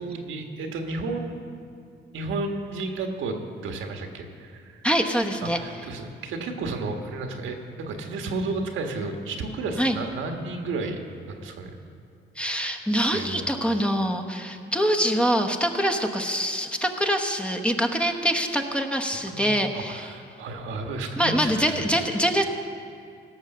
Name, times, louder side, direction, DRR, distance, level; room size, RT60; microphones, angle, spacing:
voice 1, 0.0-1.5 2.1-3.4 3.6-4.9 5.4-11.0 11.3-11.8 13.0-13.5 19.3-22.1, right 3 dB, 80° right, 4 dB, 1.5 m, -32 dB
voice 2, 4.8-5.6 9.8-10.0 12.4-20.0 21.2-22.4, equal, 5° left, 4 dB, 0.9 m, -24 dB
16.5 x 6.6 x 6.6 m, 2.4 s
cardioid pair, 90°, 20 cm